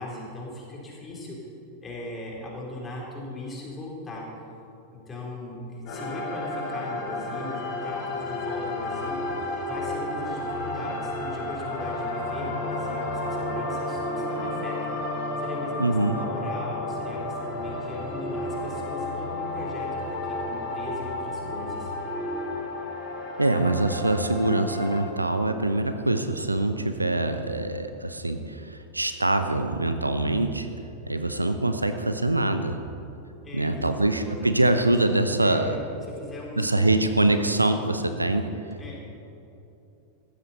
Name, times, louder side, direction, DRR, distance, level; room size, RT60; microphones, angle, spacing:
voice 1, 0.0-1.4 1.8-4.3 4.9-9.2 9.7-14.9 15.4-21.9 33.4-34.5 35.3-36.9 38.7-39.0, left 2 dB, 20° left, -3 dB, 3.7 m, -38 dB
sound 1, 5.9-25.0, left 2 dB, 40° left, 2.9 m, -33 dB
sound 2, 8.0-22.7, equal, 25° right, 3.0 m, -38 dB
voice 2, 15.8-16.2 23.4-30.7 31.1-32.8 33.5-35.8 36.6-38.5, right 2 dB, 85° right, 8 dB, 0.7 m, -24 dB
15.0 x 13.0 x 4.3 m, 2.8 s
figure-of-eight pair, 90°, 0 cm